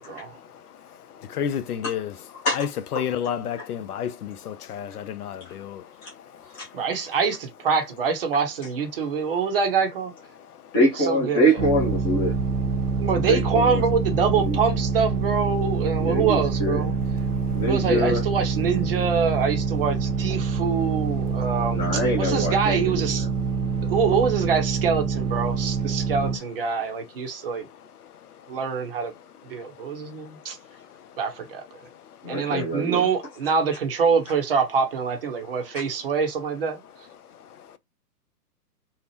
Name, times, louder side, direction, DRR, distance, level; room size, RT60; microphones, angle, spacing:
voice 1, 0.2-6.8 10.5-10.6 12.8-13.1 17.4-17.6 28.0-28.1 29.8-30.4 30.8-31.2 31.9-32.1 37.4-37.8, left 8 dB, 65° left, 0.5 m, -33 dB
voice 2, 6.7-10.1 10.8-11.6 13.0-16.9 17.7-23.3 23.9-27.7 28.5-29.1 29.4-30.6 31.2-31.6 32.3-36.8, right 5 dB, 35° right, 0.7 m, -25 dB
voice 3, 10.7-12.3 13.2-13.8 14.2-14.6 16.0-16.9 17.5-18.2 21.7-23.0 32.2-33.1, equal, 10° left, 0.5 m, -24 dB
sound 1, 11.6-26.4, right 5 dB, 75° right, 0.7 m, -26 dB
2.8 x 2.0 x 3.1 m
figure-of-eight pair, 120°, 49 cm